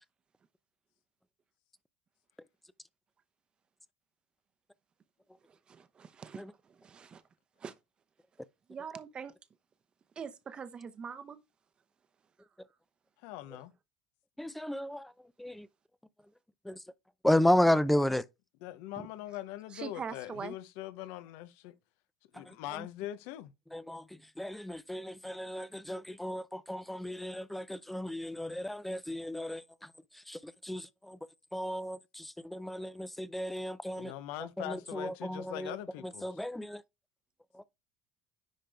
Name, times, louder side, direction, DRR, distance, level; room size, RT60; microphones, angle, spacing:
voice 1, 5.5-6.4 6.8-7.2 7.6-7.7 8.7-9.3 10.2-11.4 19.0-19.1 19.7-20.5, right 6 dB, 30° right, 0.8 m, -43 dB
voice 2, 13.2-13.7 18.6-21.7 22.3-23.5 34.0-36.4, left 14 dB, 75° left, 0.8 m, -42 dB
voice 3, 14.4-15.1 15.4-15.7 16.7-16.8 17.2-18.2 22.5-22.6 23.7-24.0 24.4-29.6 30.3-31.2 31.5-34.1 34.6-35.8 36.2-36.8, left 1 dB, 5° left, 0.5 m, -32 dB
10.0 x 3.7 x 3.4 m
supercardioid pair, 125°, 3 cm